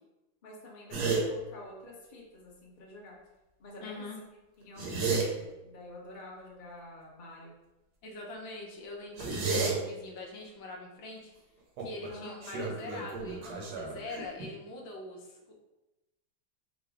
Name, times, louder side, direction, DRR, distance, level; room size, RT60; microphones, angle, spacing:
voice 1, 0.4-3.1 3.6-4.2 4.6-7.5 12.1-12.4, left 1 dB, 35° left, -4 dB, 0.8 m, -48 dB
sound 1, 0.9-1.2 4.6-5.3 9.2-9.7 11.8-12.1 12.4-14.5, right 4 dB, 65° right, 1.5 m, -31 dB
voice 2, 3.8-4.2 8.0-11.3 11.8-15.5, left 2 dB, 70° left, -1 dB, 1.5 m, -43 dB
4.9 x 2.2 x 4.8 m, 1.0 s
omnidirectional pair, 2.2 m